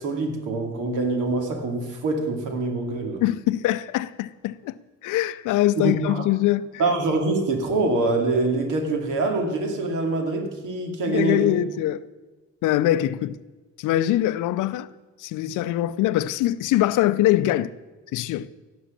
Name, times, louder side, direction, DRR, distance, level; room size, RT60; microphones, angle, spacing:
voice 1, 0.0-3.2 5.8-6.3 6.8-11.5, right 3 dB, 85° right, 2.3 m, -25 dB
voice 2, 3.2-6.8 11.1-12.0 12.6-13.4 13.8-14.9 15.2-17.7 18.1-18.5, left 14 dB, 90° left, 0.6 m, -23 dB
16.5 x 6.3 x 7.5 m
cardioid pair, 90°, 30 cm